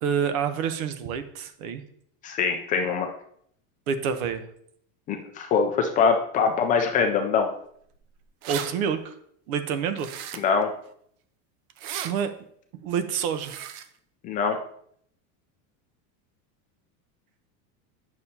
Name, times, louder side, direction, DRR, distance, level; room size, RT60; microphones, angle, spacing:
voice 1, 0.0-1.8 3.9-4.4 8.5-9.2 9.5-10.1 12.0-12.3 12.7-13.5, right 7 dB, 90° right, 10 dB, 1.0 m, -27 dB
voice 2, 2.2-3.1 5.1-7.5 10.4-10.7 14.2-14.6, left 5 dB, 20° left, 4 dB, 0.3 m, -23 dB
sound 1, 7.9-8.0 8.2-8.7 10.0-10.6 11.7-12.1 13.3-13.9, right 10 dB, 60° right, 0.7 m, -35 dB
9.0 x 6.4 x 2.8 m, 0.66 s
supercardioid pair, 165°, 41 cm